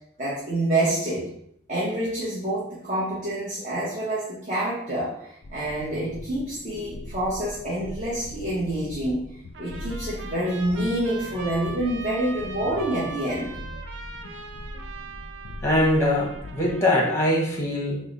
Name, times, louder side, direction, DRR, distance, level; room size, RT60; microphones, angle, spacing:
voice 1, 0.2-1.3 1.7-9.2 9.6-13.5, right 1 dB, 40° right, -8 dB, 0.8 m, -27 dB
sound 1, 5.4-16.7, left 1 dB, 60° left, 0.4 m, -40 dB
Trumpet, 9.5-17.2, right 3 dB, 80° right, 0.4 m, -40 dB
voice 2, 15.6-18.0, left 1 dB, 15° left, -2 dB, 0.7 m, -22 dB
3.7 x 2.0 x 3.9 m, 0.71 s
head